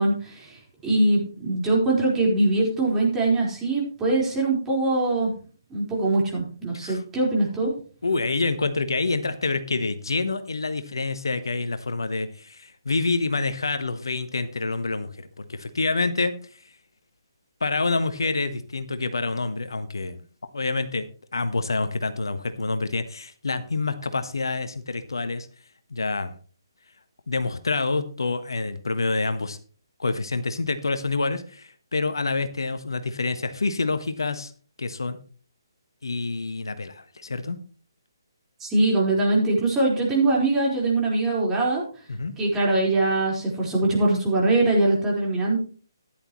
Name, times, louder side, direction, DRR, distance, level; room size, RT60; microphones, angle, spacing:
voice 1, 0.0-5.3 5.7-7.7 38.6-41.8 42.4-45.6, right 2 dB, 15° right, -4 dB, 4.4 m, -22 dB
voice 2, 8.0-16.6 17.6-20.2 20.5-25.5 25.9-26.3 27.3-29.6 30.0-34.5 34.8-35.2 36.0-37.6 42.1-42.3, left 3 dB, 75° left, 10 dB, 1.2 m, -27 dB
14.0 x 10.5 x 3.1 m, 0.41 s
figure-of-eight pair, 145°, 2 cm